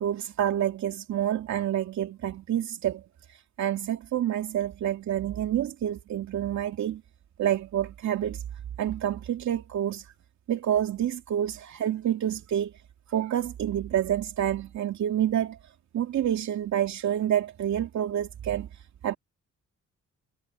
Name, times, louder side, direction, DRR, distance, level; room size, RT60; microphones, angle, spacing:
voice 1, 0.0-3.0 3.3-7.0 7.4-8.4 8.8-10.1 10.5-12.7 13.1-15.6 15.9-18.7 19.0-19.2, right 10 dB, 65° right, 2.6 m, -28 dB
cardioid pair, 90°, 30 cm